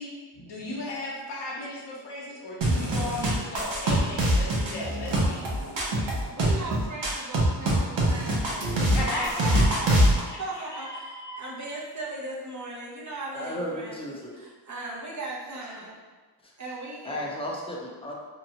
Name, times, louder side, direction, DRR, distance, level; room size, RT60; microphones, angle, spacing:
voice 1, 0.0-5.4 8.9-9.7 10.3-11.4, left 2 dB, 60° left, -4 dB, 0.9 m, -36 dB
sound 1, 2.6-10.2, right 1 dB, 65° right, 0.8 m, -24 dB
voice 2, 6.3-11.1 11.4-16.0 16.6-17.4, right 2 dB, 40° right, -4 dB, 0.8 m, -38 dB
voice 3, 13.3-14.4 16.4-16.5 17.0-18.1, left 1 dB, 10° left, -3 dB, 0.7 m, -34 dB
2.8 x 2.3 x 2.8 m, 1.4 s
cardioid pair, 50°, 47 cm